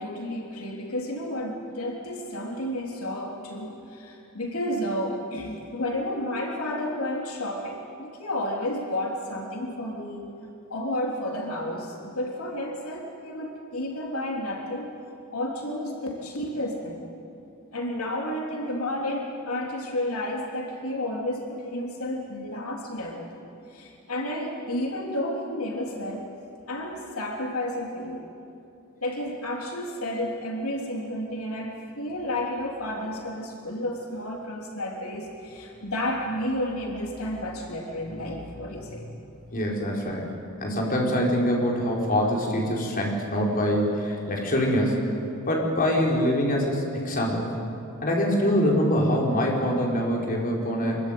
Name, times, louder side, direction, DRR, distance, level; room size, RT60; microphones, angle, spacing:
voice 1, 0.0-10.4 10.7-14.9 15.3-17.1 17.7-26.3 26.7-28.3 29.0-39.3, left 1 dB, 85° left, 0 dB, 3.3 m, -31 dB
voice 2, 39.5-40.2 40.6-45.1 45.5-47.5 48.0-51.0, equal, 40° left, -2 dB, 5.2 m, -24 dB
25.5 x 24.0 x 9.3 m, 2.7 s
head